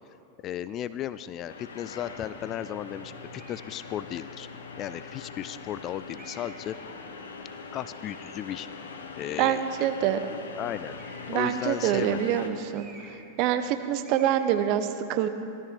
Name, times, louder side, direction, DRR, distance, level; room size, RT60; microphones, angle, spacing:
voice 1, 0.4-4.5 4.8-6.8 7.7-8.7 9.2-9.9 10.3-11.0 11.3-12.5, left 11 dB, 35° left, 15 dB, 0.3 m, -35 dB
sound 1, 1.5-12.5, left 4 dB, 65° left, 1.2 m, -42 dB
sound 2, 3.4-3.8 4.6-4.7 6.1-6.7 10.8-11.4 12.7-13.3 13.6-13.8 14.0-14.4, right 2 dB, 20° right, 3.3 m, -50 dB
voice 2, 9.4-10.2 11.3-12.9 13.4-15.3, right 10 dB, 45° right, 10 dB, 0.7 m, -25 dB
16.0 x 13.0 x 4.4 m, 2.6 s
figure-of-eight pair, 90°, 0 cm